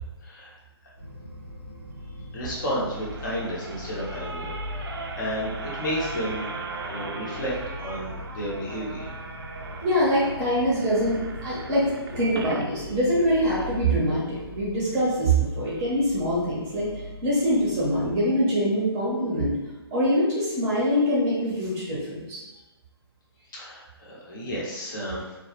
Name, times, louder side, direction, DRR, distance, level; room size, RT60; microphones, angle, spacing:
voice 1, 0.2-0.5 2.3-9.2 23.5-25.4, equal, 45° left, -5 dB, 0.8 m, -32 dB
sound 1, 1.0-18.2, left 1 dB, 85° left, 0.9 m, -40 dB
sound 2, 2.5-12.7 13.2-13.3 13.5-13.6, right 4 dB, 60° right, 0.4 m, -38 dB
voice 2, 9.8-16.9 17.2-19.6 19.9-22.4, equal, 20° right, -7 dB, 0.7 m, -24 dB
2.1 x 2.1 x 2.9 m, 1.1 s
figure-of-eight pair, 140°, 14 cm